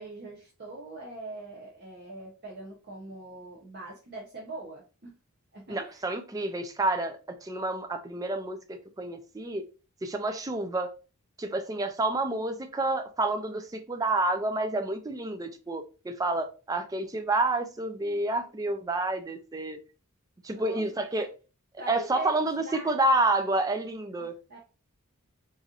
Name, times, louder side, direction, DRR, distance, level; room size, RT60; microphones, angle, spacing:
voice 1, 0.0-5.1 5.5-6.2 20.5-21.0 21.8-22.9 24.2-24.6, right 2 dB, 45° right, 0.7 m, -42 dB
voice 2, 5.7-9.6 10.0-10.9 11.4-19.8 20.4-21.3 21.9-24.3, right 2 dB, 15° right, 0.3 m, -29 dB
4.0 x 2.5 x 2.7 m
head